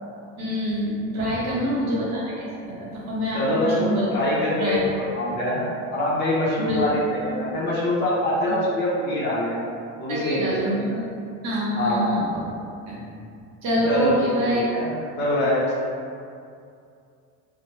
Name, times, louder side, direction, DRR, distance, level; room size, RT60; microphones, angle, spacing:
voice 1, 0.4-4.1 4.6-5.1 6.7-6.8 8.5-8.6 10.1-11.0 11.4-12.2 12.9-13.0 13.6-14.6, equal, 55° right, -6 dB, 0.9 m, -26 dB
voice 2, 1.4-1.8 3.3-4.8 5.1-9.7 10.0-10.8 11.8-12.1 13.0-13.2 13.9-15.6, left 1 dB, 35° left, -7 dB, 0.7 m, -25 dB
2.9 x 2.1 x 3.0 m, 2.4 s
cardioid pair, 155°, 32 cm